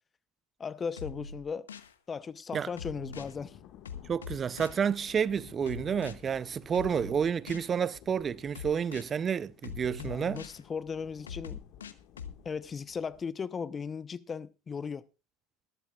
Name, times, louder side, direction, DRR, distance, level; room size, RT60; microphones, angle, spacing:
voice 1, 0.6-1.7 2.1-3.6 10.0-11.6 12.4-15.1, left 6 dB, 30° left, 0.8 m, -37 dB
sound 1, 1.0-1.9 2.8-3.3 3.9-4.8 5.7-6.1 6.7-7.7 8.6-9.1 9.6-10.6 11.3-12.4, left 6 dB, 85° left, 0.8 m, -42 dB
Thunder / Rain, 2.7-13.3, left 10 dB, 55° left, 1.8 m, -54 dB
voice 2, 4.1-10.4, right 7 dB, 30° right, 0.6 m, -30 dB
20.5 x 12.0 x 2.4 m
hypercardioid pair, 80°, 0 cm